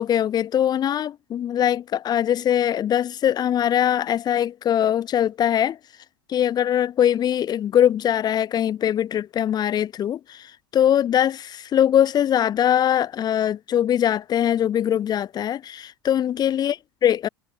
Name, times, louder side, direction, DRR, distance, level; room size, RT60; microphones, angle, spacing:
voice 1, 0.0-5.8 6.3-16.7 17.0-17.3, left 10 dB, 35° left, 2.8 m, -22 dB
hypercardioid pair, 80°, 11 cm